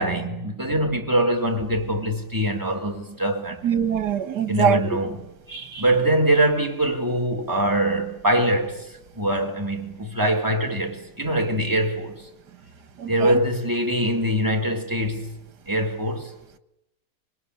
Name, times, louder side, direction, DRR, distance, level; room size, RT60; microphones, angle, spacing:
voice 1, 0.0-3.8 4.5-5.2 5.8-12.3 13.0-15.4 15.7-16.3, right 1 dB, 10° right, 3.9 m, -23 dB
voice 2, 3.6-4.8 5.5-5.8 13.0-13.4, right 8 dB, 80° right, 2.0 m, -23 dB
25.5 x 23.0 x 9.7 m
omnidirectional pair, 1.8 m